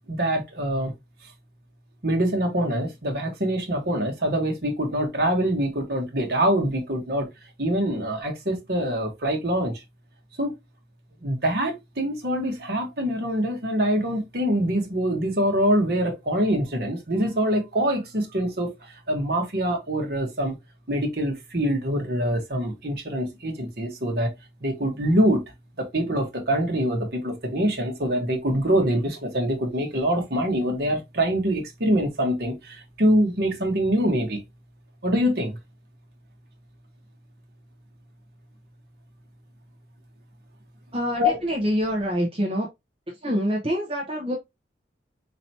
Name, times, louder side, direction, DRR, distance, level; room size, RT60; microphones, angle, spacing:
voice 1, 0.1-0.9 2.0-7.3 7.6-9.8 10.4-10.5 11.2-20.5 20.9-24.3 24.6-25.4 25.8-34.4 35.0-35.6 41.2-41.3, equal, 60° right, 1.2 m, -24 dB
voice 2, 40.9-42.7 43.1-44.4, equal, 30° right, 0.9 m, -26 dB
4.3 x 3.0 x 2.7 m
head